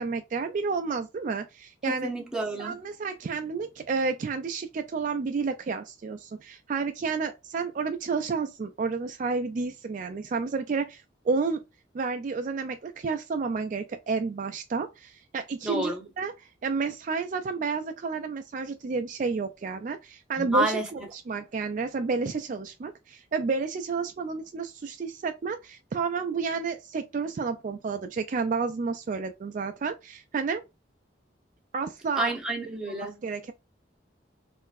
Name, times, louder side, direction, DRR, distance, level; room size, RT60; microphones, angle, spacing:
voice 1, 0.0-2.1 2.6-11.6 11.9-30.6 31.7-32.3 32.9-33.5, right 4 dB, 45° right, 0.3 m, -31 dB
voice 2, 1.8-2.8 15.6-16.0 20.4-20.9 32.2-33.2, right 2 dB, 5° right, 0.9 m, -29 dB
3.8 x 2.5 x 2.5 m
head